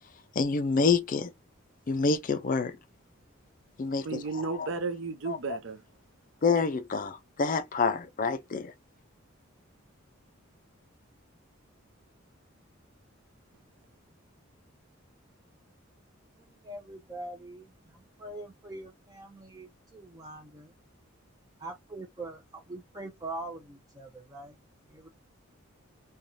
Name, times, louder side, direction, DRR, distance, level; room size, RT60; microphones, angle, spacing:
voice 1, 0.4-1.3 1.9-2.8 3.8-4.2 4.6-4.7 5.3-5.4 6.4-8.7, left 4 dB, 40° left, 0.4 m, -27 dB
voice 2, 4.0-5.8, right 4 dB, 60° right, 0.6 m, -33 dB
voice 3, 16.6-20.7 21.6-24.5 24.9-25.1, right 2 dB, 20° right, 0.5 m, -43 dB
3.1 x 2.2 x 2.5 m
head